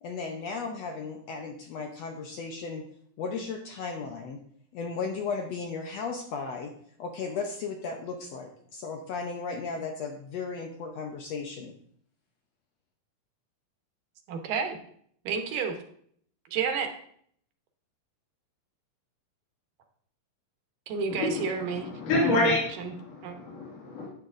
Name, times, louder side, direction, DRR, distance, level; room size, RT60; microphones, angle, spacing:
voice 1, 0.0-2.8 3.2-4.4 4.7-6.7 7.0-11.7, left 4 dB, 80° left, 3 dB, 1.4 m, -35 dB
voice 2, 14.3-14.8 15.3-15.7 16.5-16.9 20.9-21.9 22.2-22.5 22.8-22.9 23.2-23.3, right 6 dB, 75° right, 5 dB, 2.6 m, -30 dB
voice 3, 21.1-24.1, left 2 dB, 50° left, -5 dB, 2.9 m, -28 dB
10.5 x 8.9 x 2.5 m, 0.63 s
omnidirectional pair, 4.0 m